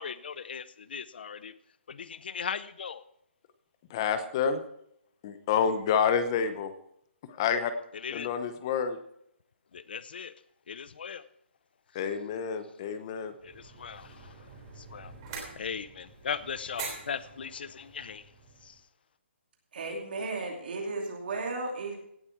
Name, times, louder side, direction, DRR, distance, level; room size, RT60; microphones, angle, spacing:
voice 1, 0.0-1.5 1.9-3.0 7.9-8.3 9.7-10.3 10.7-11.2 13.4-15.1 15.6-18.3 18.6-18.8, left 6 dB, 50° left, 15 dB, 0.7 m, -38 dB
voice 2, 3.9-4.6 5.2-6.7 7.3-7.7 8.1-9.0 11.9-13.3, left 7 dB, 20° left, 10 dB, 0.9 m, -28 dB
sound 1, 13.4-18.8, right 5 dB, 20° right, 3.3 m, -45 dB
voice 3, 19.7-22.0, right 3 dB, 50° right, 1 dB, 2.7 m, -34 dB
17.0 x 8.3 x 4.6 m, 0.72 s
hypercardioid pair, 175°, 7 cm